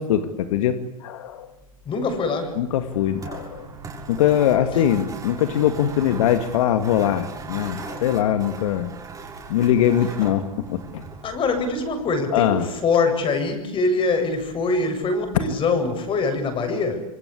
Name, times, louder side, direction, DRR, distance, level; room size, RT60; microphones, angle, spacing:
voice 1, 0.0-1.5 2.6-3.7 4.1-9.0 9.5-10.4 10.7-11.0 12.3-12.7, left 10 dB, 65° left, 9 dB, 2.3 m, -22 dB
voice 2, 1.8-2.6 11.2-17.0, left 3 dB, 30° left, 7 dB, 7.9 m, -23 dB
sound 1, 2.8-12.2, right 4 dB, 20° right, 7.0 m, -38 dB
27.5 x 23.5 x 8.5 m, 0.90 s
hypercardioid pair, 110°, 18 cm